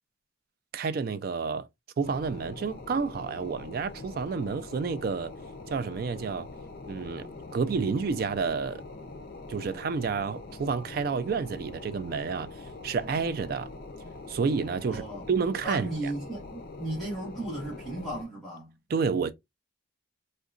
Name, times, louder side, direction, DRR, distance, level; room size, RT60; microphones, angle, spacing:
voice 1, 0.7-1.7 2.0-5.3 5.7-6.5 6.9-8.8 9.5-12.5 12.8-13.7 14.3-16.1 18.9-19.3, right 5 dB, 50° right, 0.3 m, -30 dB
sound 1, 2.0-18.2, left 3 dB, 50° left, 0.5 m, -43 dB
voice 2, 14.9-15.2 15.6-18.7, right 1 dB, ahead, 1.0 m, -35 dB
3.6 x 2.2 x 2.4 m
head